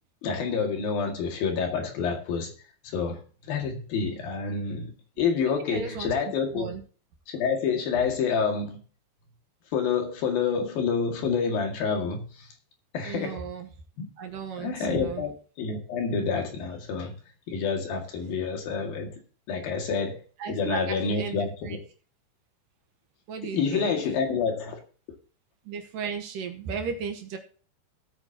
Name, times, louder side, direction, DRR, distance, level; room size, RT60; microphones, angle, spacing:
voice 1, 0.2-2.5 2.8-3.2 3.5-4.9 5.2-6.7 7.3-8.8 9.7-12.5 12.9-13.5 14.0-14.1 14.6-15.3 15.6-17.1 17.5-19.2 19.5-20.2 20.5-21.8 23.5-24.8, left 5 dB, 60° left, 3 dB, 3.6 m, -28 dB
voice 2, 5.7-6.1 6.5-6.8 8.0-8.1 13.0-13.7 14.2-15.3 20.4-21.4 21.6-21.8 23.3-23.9 25.6-27.4, right 6 dB, 70° right, 5 dB, 2.3 m, -35 dB
17.5 x 8.9 x 2.9 m, 0.40 s
omnidirectional pair, 5.1 m